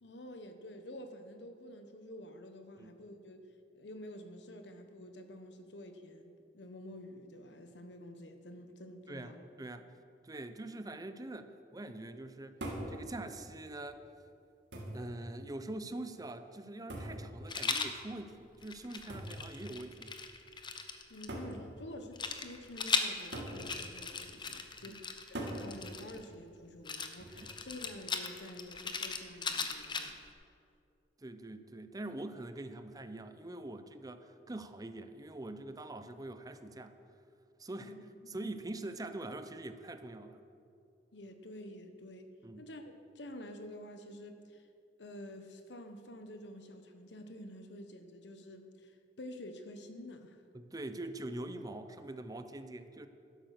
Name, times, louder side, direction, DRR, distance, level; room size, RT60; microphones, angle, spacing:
voice 1, 0.0-9.4 21.1-30.2 37.8-38.5 41.1-44.7 45.0-50.4, left 1 dB, 75° left, 1.2 m, -49 dB
voice 2, 10.2-12.6 12.9-14.0 14.9-20.1 24.9-25.0 27.4-27.5 31.2-36.9 37.6-40.4 42.4-42.7 50.5-53.1, right 2 dB, 20° right, 0.6 m, -44 dB
sound 1, 12.6-13.0 14.0-14.1 14.7-15.1 16.9-17.3 19.1-19.4 20.4-20.5 21.3-21.6 23.3-23.6 25.3-25.7 27.2-27.6, right 1 dB, 85° right, 2.4 m, -41 dB
Rattle, 17.5-17.9 18.6-21.3 22.2-26.2 26.8-30.3, left 5 dB, 25° left, 0.8 m, -38 dB
12.0 x 10.5 x 6.6 m
head